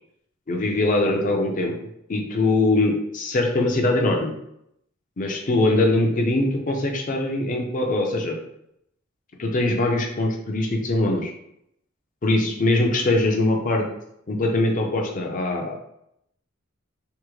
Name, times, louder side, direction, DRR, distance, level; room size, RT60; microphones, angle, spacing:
voice 1, 0.5-1.8 2.1-4.3 5.2-8.4 9.4-11.3 12.2-13.8 14.3-15.8, left 2 dB, 40° left, 1 dB, 0.5 m, -22 dB
3.5 x 2.1 x 3.1 m, 0.77 s
head